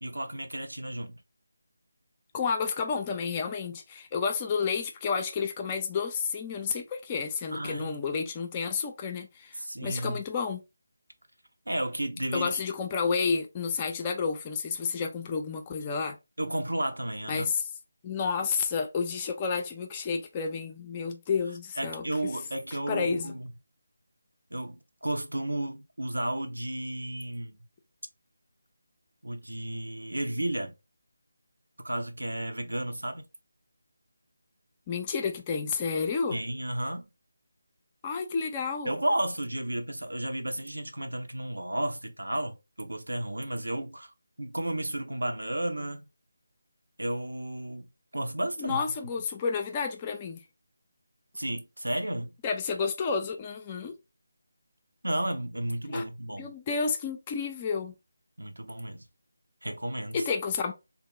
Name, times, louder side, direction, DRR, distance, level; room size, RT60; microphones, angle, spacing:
voice 1, 0.0-1.2 7.5-8.0 9.6-10.2 11.7-12.6 16.4-17.5 21.8-23.5 24.5-27.6 29.2-30.7 31.8-33.2 36.3-37.1 38.8-44.1 44.4-46.0 47.0-47.9 48.1-48.8 51.3-52.3 55.0-56.6 58.4-59.0 59.6-60.2, right 1 dB, 70° right, 0.6 m, -33 dB
voice 2, 2.3-10.6 12.3-16.2 17.3-17.7 18.0-22.0 22.9-23.3 34.9-36.4 38.0-38.9 48.6-50.4 52.4-53.9 55.9-56.0 56.4-57.9 60.1-60.7, left 5 dB, 20° left, 0.3 m, -30 dB
3.5 x 2.0 x 2.8 m
figure-of-eight pair, 155°, 0 cm